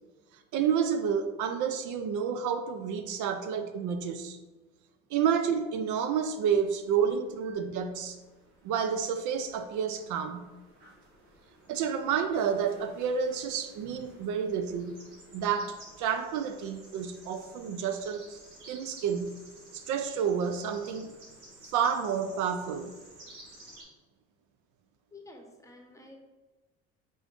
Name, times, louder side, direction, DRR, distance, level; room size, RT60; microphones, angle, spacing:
voice 1, 0.5-4.4 5.1-8.2 8.6-10.5 11.7-15.0 15.3-18.4 18.7-19.4 19.7-21.2 21.7-22.9, right 7 dB, 70° right, 8 dB, 0.5 m, -30 dB
sound 1, 6.4-23.8, right 1 dB, 85° right, 1.4 m, -54 dB
voice 2, 25.1-26.2, left 2 dB, 10° left, 2 dB, 0.9 m, -50 dB
5.0 x 3.8 x 2.5 m, 1.2 s
supercardioid pair, 80°, 32 cm